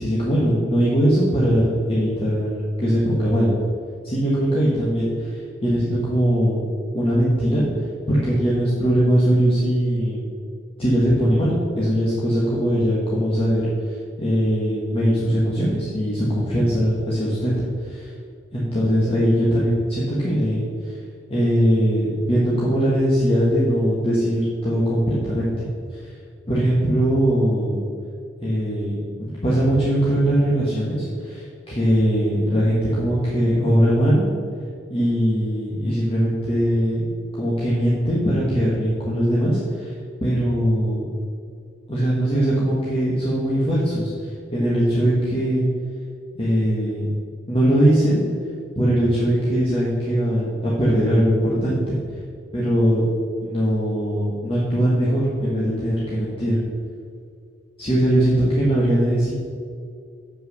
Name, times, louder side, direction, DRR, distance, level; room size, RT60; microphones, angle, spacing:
voice 1, 0.0-2.5 2.8-3.5 4.0-6.6 6.9-7.6 8.1-10.2 10.8-17.5 17.8-18.1 18.5-21.0 21.3-25.5 26.0-26.1 26.5-27.8 28.4-34.2 34.9-37.0 37.4-39.9 40.2-41.1 41.9-45.6 46.3-47.1 47.5-48.2 48.8-52.0 52.5-53.0 53.4-56.6 57.8-59.3, equal, 30° left, -7 dB, 1.4 m, -20 dB
7.5 x 5.8 x 6.5 m, 2.4 s
head